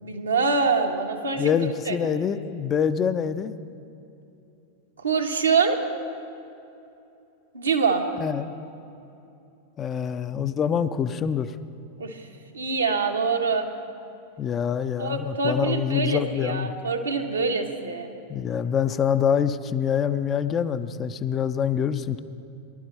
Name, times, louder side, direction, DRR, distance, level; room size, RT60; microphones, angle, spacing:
voice 1, 0.0-1.5 1.8-2.1 5.0-5.8 7.5-8.0 12.0-12.2 12.5-13.7 15.0-18.1, right 4 dB, 75° right, 3 dB, 1.1 m, -25 dB
voice 2, 1.4-3.6 8.2-8.5 9.8-11.6 14.4-16.7 18.3-22.2, left 8 dB, 25° left, 12 dB, 0.4 m, -25 dB
20.0 x 11.5 x 3.2 m, 2.8 s
figure-of-eight pair, 90°, 0 cm